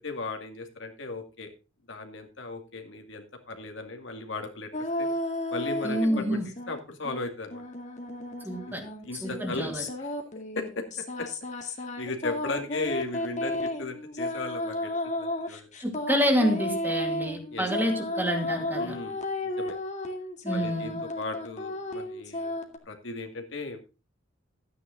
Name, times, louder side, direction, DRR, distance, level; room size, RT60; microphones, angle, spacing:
voice 1, 0.0-1.5 1.9-4.7 5.0-5.1 5.5-7.6 8.7-8.8 9.0-9.7 10.0-10.1 10.6-10.8 11.2-11.3 11.6-14.9 15.2-15.7 17.5-17.7 18.8-19.8 20.5-22.6 22.9-23.8, left 3 dB, 65° left, 5 dB, 2.3 m, -36 dB
sound 1, 4.7-6.8 7.0-22.8, left 1 dB, 40° left, 2.1 m, -33 dB
voice 2, 5.8-6.5 8.4-8.8 9.2-9.8 15.8-19.0 20.4-21.0, equal, 10° right, 3 dB, 2.5 m, -28 dB
13.0 x 9.6 x 3.9 m, 0.30 s
head